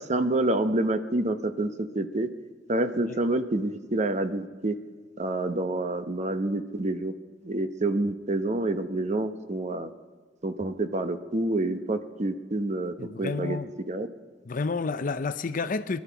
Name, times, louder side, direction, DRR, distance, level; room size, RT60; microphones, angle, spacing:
voice 1, 0.0-2.3 2.7-4.7 5.2-7.1 7.4-9.9 10.4-13.6 13.9-14.1, right 2 dB, 40° right, 0.8 m, -28 dB
voice 2, 13.0-13.7 14.5-16.0, left 4 dB, 45° left, 0.6 m, -30 dB
21.5 x 12.0 x 4.6 m
head